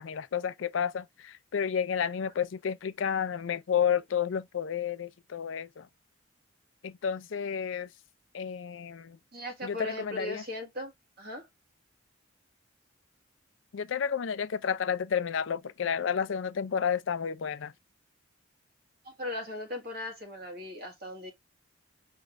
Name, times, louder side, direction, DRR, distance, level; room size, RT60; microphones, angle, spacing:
voice 1, 0.0-5.9 6.8-7.9 8.3-9.2 9.6-10.4 13.7-17.7, left 7 dB, 75° left, 0.4 m, -31 dB
voice 2, 9.3-10.9 11.2-11.5 19.0-21.3, left 1 dB, 50° right, 1.7 m, -38 dB
5.1 x 2.4 x 3.2 m
head